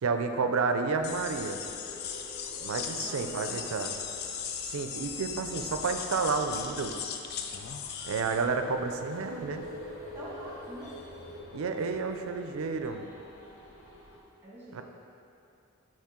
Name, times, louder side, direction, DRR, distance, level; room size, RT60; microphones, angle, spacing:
voice 1, 0.0-1.6 2.6-3.9 4.6-6.9 8.0-9.6 11.5-13.1 14.7-14.8, right 4 dB, 80° right, 7 dB, 0.4 m, -30 dB
sound 1, 0.8-14.2, left 1 dB, 85° left, 1.0 m, -47 dB
sound 2, 1.0-8.4, left 7 dB, 50° left, 0.3 m, -38 dB
voice 2, 3.0-3.8 10.0-10.9 14.4-14.8, right 1 dB, 10° right, -7 dB, 1.4 m, -45 dB
8.6 x 3.2 x 3.7 m, 2.6 s
head